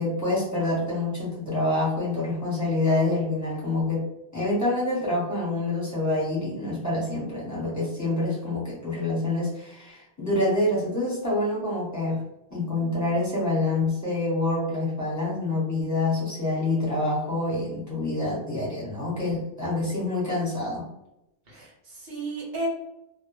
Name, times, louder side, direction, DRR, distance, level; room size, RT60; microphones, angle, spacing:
voice 1, 0.0-4.0 4.3-12.2 12.5-20.8, left 2 dB, 15° left, -7 dB, 0.9 m, -26 dB
voice 2, 12.5-13.2 21.5-22.7, right 2 dB, 65° right, -3 dB, 1.1 m, -35 dB
2.2 x 2.1 x 3.0 m, 0.85 s
omnidirectional pair, 1.1 m